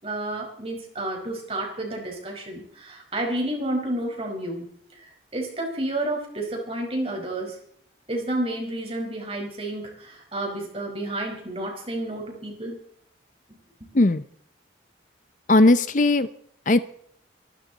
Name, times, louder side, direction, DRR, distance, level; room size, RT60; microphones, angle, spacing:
voice 1, 0.0-4.7 4.9-7.6 8.1-12.8 13.8-13.9, right 1 dB, 30° right, 1 dB, 5.0 m, -30 dB
voice 2, 15.5-16.3 16.7-16.8, left 2 dB, 45° left, 14 dB, 0.6 m, -17 dB
24.0 x 13.0 x 4.1 m, 0.65 s
head